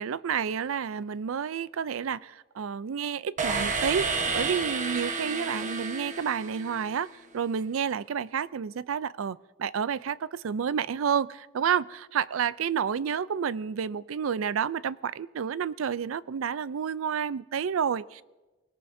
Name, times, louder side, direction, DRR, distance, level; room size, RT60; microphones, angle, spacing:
voice 1, 0.0-18.2, right 7 dB, 75° right, 18 dB, 0.4 m, -30 dB
sound 1, 3.4-7.2, right 4 dB, 40° right, 1.1 m, -31 dB
24.0 x 17.5 x 2.7 m, 1.1 s
head